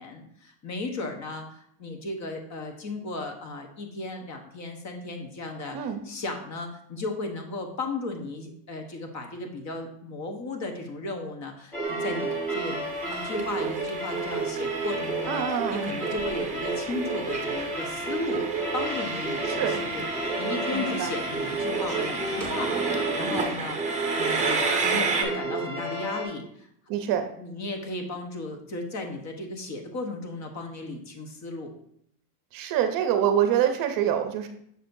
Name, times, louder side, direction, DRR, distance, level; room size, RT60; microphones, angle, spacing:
voice 1, 0.0-26.7 27.4-31.7, left 2 dB, 35° left, 4 dB, 1.1 m, -35 dB
sound 1, 11.7-26.3, right 2 dB, 5° left, 1.7 m, -31 dB
Train, 11.8-25.2, right 4 dB, 15° right, 0.9 m, -33 dB
voice 2, 15.3-15.9 19.5-19.8 20.7-21.1 26.9-27.3 32.5-34.5, right 9 dB, 45° right, 7 dB, 0.7 m, -25 dB
6.8 x 6.2 x 2.6 m, 0.69 s
supercardioid pair, 125°, 48 cm